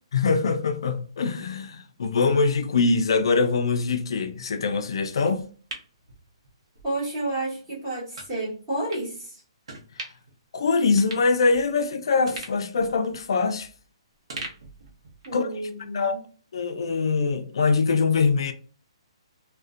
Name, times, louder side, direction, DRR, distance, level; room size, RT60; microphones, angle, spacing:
voice 1, 0.1-5.4 10.5-13.7 15.3-15.5 15.9-16.2 16.5-18.5, left 4 dB, 55° left, 0.4 m, -23 dB
sound 1, 5.3-6.9 7.2-7.4 8.1-8.3 8.9-9.1 9.7-10.3 10.6-10.7 11.0-11.9 12.3-13.9 14.3-15.5 15.8-15.9, right 2 dB, 65° right, 0.7 m, -41 dB
voice 2, 6.8-9.4 15.2-16.2, right 2 dB, 20° right, 1.3 m, -31 dB
2.5 x 2.1 x 2.4 m
hypercardioid pair, 175°, 3 cm